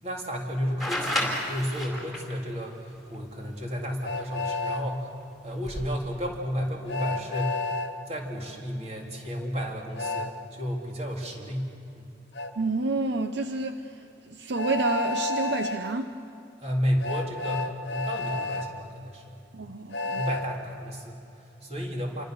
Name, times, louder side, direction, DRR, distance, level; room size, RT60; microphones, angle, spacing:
voice 1, 0.0-5.1 5.4-7.7 8.1-11.7 11.9-12.0 16.6-19.4 20.1-22.2, equal, 35° right, 0 dB, 3.7 m, -32 dB
sound 1, 0.8-2.3 4.2-4.3 5.5-5.9, left 1 dB, ahead, 4.3 m, -30 dB
Train, 4.0-4.8 6.9-7.9 10.0-10.3 12.4-12.5 14.6-15.8 17.0-18.7 19.9-20.4, left 3 dB, 70° left, 1.3 m, -30 dB
voice 2, 12.6-16.1 19.5-20.2, right 3 dB, 70° right, 8 dB, 0.8 m, -29 dB
28.5 x 24.5 x 6.7 m, 2.8 s
head